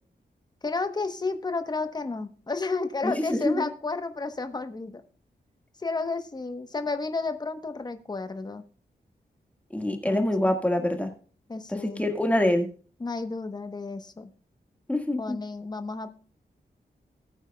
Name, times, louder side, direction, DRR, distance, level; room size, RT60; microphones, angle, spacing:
voice 1, 0.6-5.0 5.8-8.6 10.0-10.5 11.5-12.0 13.0-14.3 15.2-16.1, left 3 dB, 25° left, 9 dB, 1.0 m, -32 dB
voice 2, 3.0-3.7 9.7-11.1 11.7-12.7 14.9-15.4, left 1 dB, 10° left, 4 dB, 1.6 m, -25 dB
18.5 x 8.9 x 2.3 m, 0.40 s
wide cardioid pair, 170°, 17 cm